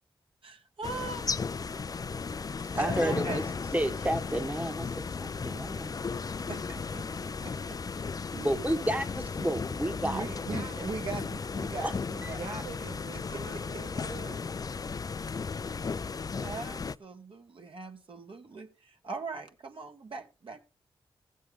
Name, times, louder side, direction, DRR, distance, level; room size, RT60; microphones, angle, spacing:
voice 1, 0.4-1.2 2.6-3.4 6.5-8.7 10.0-12.5 13.1-14.0 16.4-20.6, right 4 dB, 65° right, 1.8 m, -40 dB
sound 1, 0.8-17.0, left 5 dB, 40° left, 0.4 m, -35 dB
voice 2, 2.8-3.4 3.7-6.0 8.3-10.2 11.8-11.9 12.2-12.3, right 1 dB, 15° right, 1.2 m, -31 dB
voice 3, 10.2-10.9 12.1-14.4, right 4 dB, 80° right, 1.7 m, -44 dB
15.5 x 7.4 x 3.6 m
cardioid pair, 55°, 10 cm